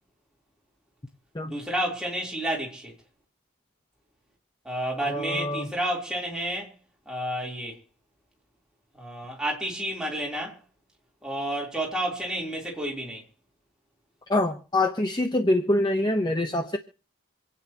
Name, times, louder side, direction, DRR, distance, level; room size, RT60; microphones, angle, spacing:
voice 1, 1.4-2.9 4.6-6.7 7.1-7.8 8.9-10.6 11.2-13.2, right 1 dB, 5° right, 3.6 m, -30 dB
voice 2, 5.0-5.7 14.3-16.8, left 1 dB, 20° left, 0.9 m, -25 dB
27.5 x 9.4 x 3.0 m
head